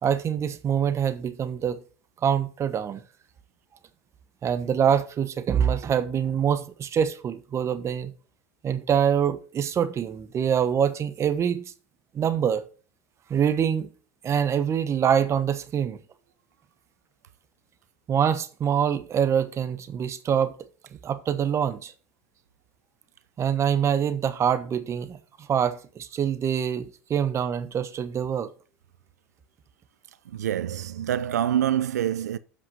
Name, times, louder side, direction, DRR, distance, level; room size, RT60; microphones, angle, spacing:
voice 1, 0.0-1.8 2.2-3.0 4.4-8.1 8.6-11.7 12.1-12.6 13.3-13.9 14.2-16.0 18.1-20.5 21.0-21.9 23.4-28.5, right 8 dB, 35° right, 1.1 m, -25 dB
voice 2, 30.3-32.4, right 10 dB, 90° right, 0.6 m, -26 dB
7.8 x 5.8 x 6.2 m
hypercardioid pair, 95°, 9 cm